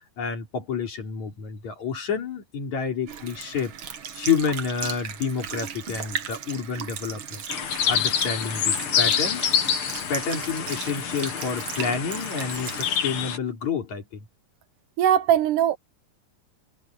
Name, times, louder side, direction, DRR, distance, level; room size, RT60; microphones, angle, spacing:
voice 1, 0.2-3.7 4.1-7.4 7.9-9.5 10.1-14.2, left 6 dB, 55° left, 5.0 m, -29 dB
Sink (filling or washing) / Liquid, 3.1-13.0, right 7 dB, 50° right, 1.7 m, -36 dB
sound 1, 7.5-13.4, left 8 dB, 90° left, 4.1 m, -27 dB
voice 2, 15.0-15.8, right 10 dB, 80° right, 2.1 m, -20 dB
omnidirectional pair, 4.0 m